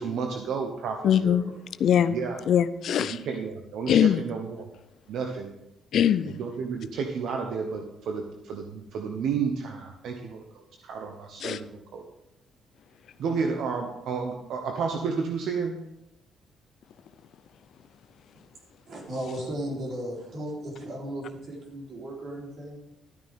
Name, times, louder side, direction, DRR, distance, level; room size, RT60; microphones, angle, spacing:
voice 1, 0.0-1.4 2.1-2.4 3.3-4.6 5.1-5.5 6.4-10.4 10.8-11.7 11.9-12.0 13.2-15.8, right 5 dB, 75° right, 3 dB, 1.0 m, -31 dB
voice 2, 1.0-1.5 1.8-2.2 2.5-3.2 3.9-4.2 5.9-6.4 11.4-11.6, left 9 dB, 70° left, 14 dB, 0.5 m, -22 dB
voice 3, 18.9-22.8, right 1 dB, 60° right, -2 dB, 3.8 m, -35 dB
12.5 x 9.3 x 3.7 m, 0.86 s
cardioid pair, 90°, 0 cm